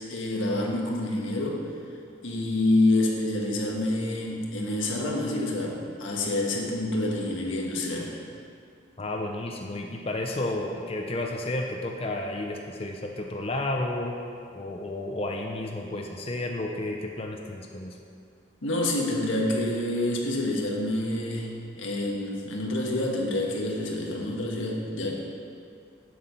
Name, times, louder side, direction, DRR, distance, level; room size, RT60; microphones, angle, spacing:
voice 1, 0.1-1.7 2.2-8.1 18.6-25.2, left 1 dB, 90° left, -1 dB, 1.5 m, -27 dB
voice 2, 9.0-14.2 14.5-18.0, left 2 dB, 30° left, 1 dB, 0.6 m, -32 dB
8.7 x 7.6 x 5.7 m, 2.3 s
head